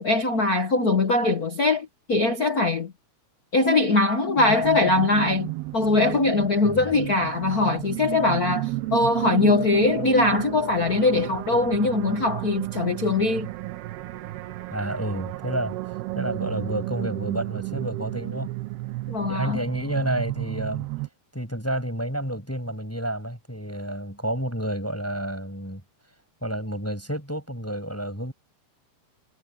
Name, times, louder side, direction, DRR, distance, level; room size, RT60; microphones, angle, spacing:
voice 1, 0.0-2.9 3.5-13.5 19.1-19.6, left 3 dB, 60° left, 0.9 m, -22 dB
sound 1, 4.4-21.1, right 18 dB, 85° right, 3.1 m, -32 dB
voice 2, 14.7-18.5 19.3-20.9 21.3-25.8 26.4-28.3, right 1 dB, 5° left, 7.8 m, -30 dB
omnidirectional pair, 4.5 m